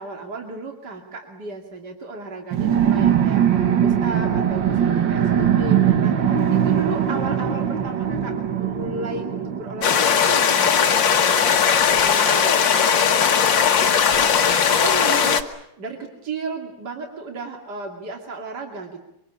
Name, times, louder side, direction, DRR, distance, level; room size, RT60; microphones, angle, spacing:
voice 1, 0.0-15.5 15.8-19.0, right 3 dB, 65° right, 2 dB, 3.2 m, -34 dB
sound 1, 2.5-10.7, right 9 dB, 80° right, 2.2 m, -21 dB
sound 2, 9.8-15.4, left 7 dB, 85° left, 2.1 m, -18 dB
25.0 x 24.0 x 8.5 m, 0.80 s
omnidirectional pair, 2.0 m